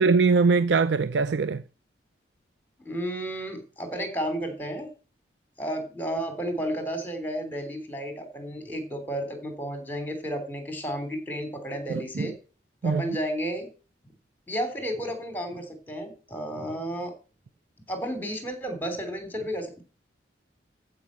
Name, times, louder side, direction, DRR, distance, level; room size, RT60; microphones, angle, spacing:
voice 1, 0.0-1.6 11.9-12.3 12.8-13.0, right 4 dB, 75° right, 0.5 m, -22 dB
voice 2, 2.8-4.9 5.6-12.3 12.8-13.7 14.5-17.1 17.9-19.8, equal, 10° left, 3.3 m, -32 dB
14.5 x 5.4 x 7.5 m
head